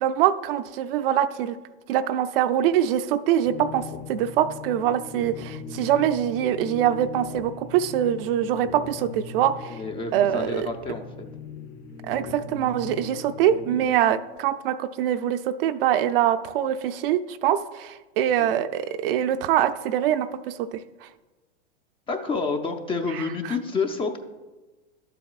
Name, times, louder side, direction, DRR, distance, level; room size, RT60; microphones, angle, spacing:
voice 1, 0.0-1.6 1.9-9.8 10.1-10.7 12.1-20.8, right 10 dB, 60° right, 11 dB, 0.5 m, -24 dB
sound 1, 3.4-13.9, left 5 dB, 55° left, 1.0 m, -39 dB
voice 2, 9.7-11.0 18.4-18.5 22.1-24.2, left 4 dB, 15° left, 6 dB, 0.5 m, -29 dB
11.5 x 7.6 x 2.4 m, 1.2 s
hypercardioid pair, 120°, 33 cm